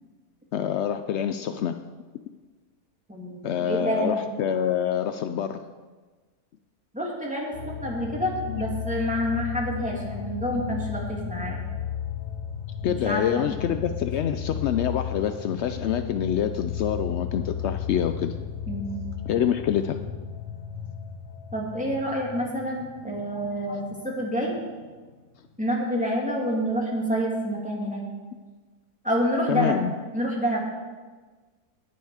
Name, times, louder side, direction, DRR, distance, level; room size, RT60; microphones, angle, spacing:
voice 1, 0.5-1.7 3.4-5.6 8.5-8.7 12.8-18.3 19.3-20.0 29.5-29.9, left 9 dB, 80° left, 8 dB, 0.6 m, -26 dB
voice 2, 3.1-4.2 6.9-11.6 12.9-13.6 18.7-19.0 21.5-23.8 24.0-24.5 25.6-28.0 29.0-29.8 30.1-30.6, equal, 5° right, -3 dB, 2.4 m, -28 dB
sound 1, 7.5-25.0 25.4-25.5, left 8 dB, 35° left, 1.3 m, -35 dB
18.5 x 7.1 x 4.9 m, 1.3 s
omnidirectional pair, 1.7 m